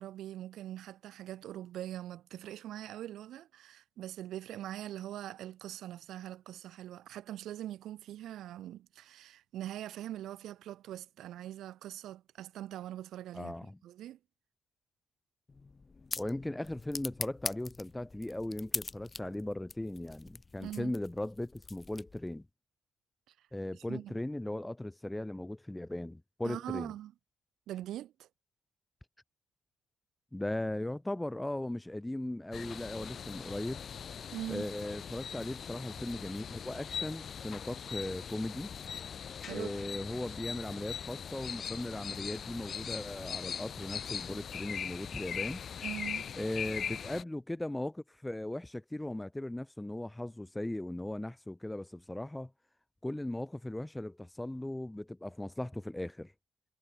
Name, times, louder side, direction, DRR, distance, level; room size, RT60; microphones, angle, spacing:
voice 1, 0.0-14.2 20.6-20.9 23.3-23.4 23.7-24.1 26.4-27.1 27.7-28.3 34.3-34.7 39.4-39.9 45.8-46.3, right 12 dB, 80° right, 1.3 m, -42 dB
voice 2, 13.3-13.8 16.2-22.4 23.5-26.9 30.3-33.8 34.5-38.7 39.5-45.6 46.4-52.5 53.0-56.3, left 1 dB, 10° left, 1.2 m, -38 dB
sound 1, 15.5-22.4, left 4 dB, 30° left, 0.8 m, -43 dB
sound 2, 32.5-47.2, left 7 dB, 55° left, 0.8 m, -41 dB
cardioid pair, 90°, 0 cm